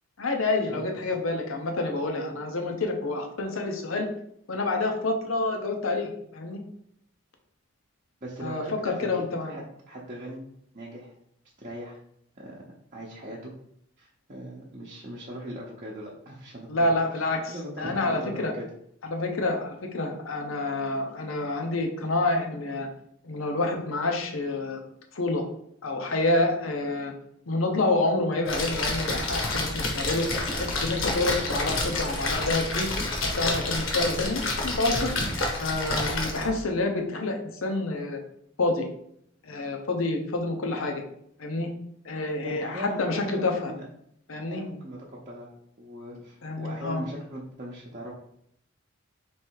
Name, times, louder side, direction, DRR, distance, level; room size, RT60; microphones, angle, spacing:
voice 1, 0.2-4.1 4.5-6.6 8.4-9.6 16.7-18.5 19.0-22.9 23.2-24.8 25.1-25.4 25.8-27.1 27.5-30.3 30.5-32.9 33.4-35.1 35.6-38.2 38.6-38.8 39.4-41.0 41.4-41.7 42.0-43.7 44.3-44.6 46.4-47.0, left 2 dB, 90° left, 3 dB, 0.8 m, -28 dB
voice 2, 8.2-10.4 10.7-11.1 11.6-12.0 12.4-12.6 12.9-13.5 14.0-17.2 17.5-18.7 42.4-43.8 44.4-45.5 45.8-48.1, equal, 40° right, -5 dB, 0.7 m, -40 dB
Splash splatter, 28.4-36.6, left 2 dB, 75° left, 1.1 m, -29 dB
3.3 x 3.2 x 4.6 m, 0.71 s
head